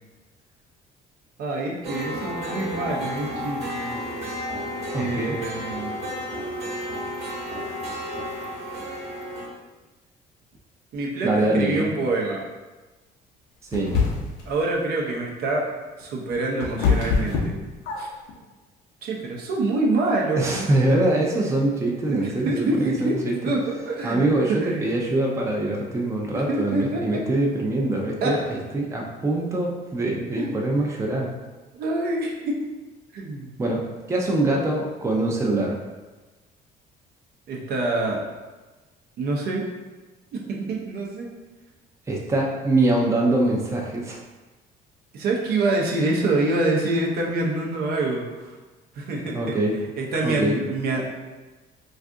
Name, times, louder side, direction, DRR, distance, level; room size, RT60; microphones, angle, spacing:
voice 1, 1.4-3.9 4.9-5.9 10.9-12.4 14.5-15.7 16.0-17.5 18.0-18.1 19.0-20.7 22.1-24.8 26.5-27.3 28.2-28.4 30.4-30.5 31.8-32.7 33.1-33.5 37.5-38.2 39.2-39.6 40.3-41.3 45.1-48.5 49.0-49.4 50.0-51.0, right 2 dB, 65° right, -1 dB, 0.6 m, -26 dB
sound 1, 1.8-9.5, equal, 40° right, 1.0 m, -32 dB
voice 2, 4.9-5.4 11.2-11.9 13.7-13.9 20.4-23.4 24.0-31.3 33.6-33.8 34.1-35.8 42.1-44.2 49.3-49.8 50.2-50.6, right 2 dB, 15° right, -1 dB, 0.4 m, -23 dB
sound 2, 13.7-14.5 16.0-18.3, left 5 dB, 80° left, 0.6 m, -24 dB
2.5 x 2.4 x 3.4 m, 1.2 s
cardioid pair, 110°, 17 cm